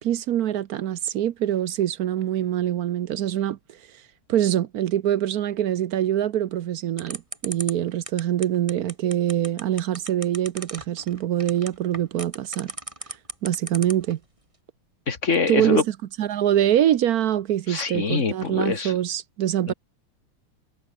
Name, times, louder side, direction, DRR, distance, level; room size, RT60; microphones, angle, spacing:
voice 1, 0.0-3.6 4.3-12.7 13.4-14.2 15.5-19.7, right 11 dB, 65° right, 0.9 m, -24 dB
sound 1, 7.0-14.1, right 2 dB, 15° right, 2.6 m, -35 dB
voice 2, 15.1-15.8 17.7-18.9 19.7-19.8, left 5 dB, 35° left, 2.3 m, -24 dB
omnidirectional pair, 2.3 m